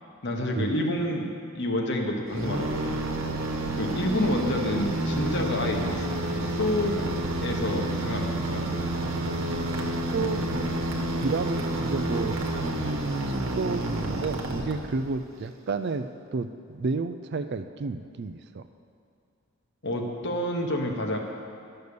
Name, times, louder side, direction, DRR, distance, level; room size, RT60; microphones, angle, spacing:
voice 1, 0.2-1.3 1.5-3.0 3.7-6.1 6.5-7.0 7.4-8.7 19.8-21.2, left 1 dB, 50° left, 2 dB, 1.2 m, -28 dB
sound 1, 2.3-15.2, right 1 dB, 65° right, 1.2 m, -29 dB
voice 2, 10.1-10.5 11.2-12.4 13.3-18.7, right 4 dB, 50° right, 10 dB, 0.4 m, -31 dB
11.0 x 6.7 x 6.7 m, 2.4 s
head